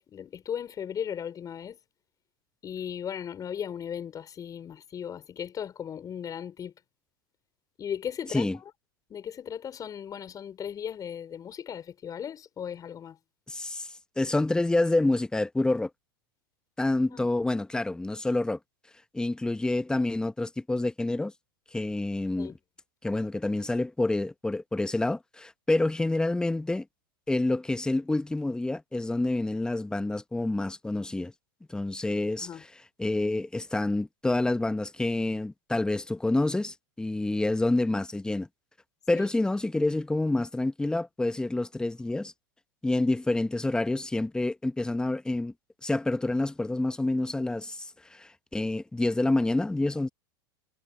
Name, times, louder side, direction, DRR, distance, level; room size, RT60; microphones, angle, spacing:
voice 1, 0.0-1.8 2.6-6.7 7.8-8.7 9.1-13.2 17.1-17.3 22.4-22.6 32.4-32.6 39.1-39.3, left 8 dB, 30° left, 4.7 m, -37 dB
voice 2, 13.5-15.9 16.8-18.6 19.1-21.3 21.7-22.5 23.0-26.8 27.3-31.3 31.7-32.5 33.0-38.5 39.1-42.3 42.8-45.5 45.8-50.1, left 2 dB, 5° left, 1.0 m, -28 dB
hypercardioid pair, 110°, 13 cm